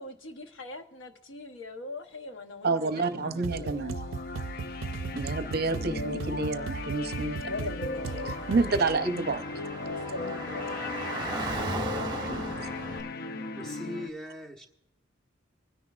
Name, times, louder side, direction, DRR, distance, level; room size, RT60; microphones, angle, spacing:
voice 1, 0.0-3.9 7.4-8.4 10.1-10.8, left 2 dB, 75° left, 1.0 m, -41 dB
voice 2, 2.6-4.0 5.1-7.4 8.5-9.4 12.1-12.4, right 3 dB, 55° right, 0.7 m, -29 dB
sound 1, 3.0-14.1, left 3 dB, 50° left, 0.5 m, -37 dB
sound 2, 3.4-9.0, right 5 dB, 85° right, 0.4 m, -37 dB
Car / Traffic noise roadway noise, 7.9-13.0, right 3 dB, 25° right, 1.1 m, -37 dB
voice 3, 13.5-14.7, left 1 dB, 5° left, 1.2 m, -41 dB
25.0 x 10.0 x 2.5 m
head